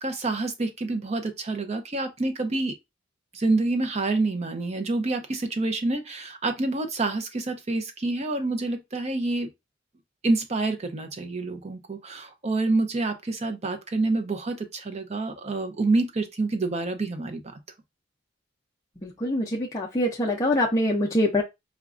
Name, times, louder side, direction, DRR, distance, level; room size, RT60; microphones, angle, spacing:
voice 1, 0.0-2.8 3.3-9.5 10.2-17.6, right 2 dB, 35° right, 0.6 m, -27 dB
voice 2, 19.0-21.4, left 1 dB, 15° left, 0.5 m, -24 dB
4.8 x 2.2 x 2.4 m
head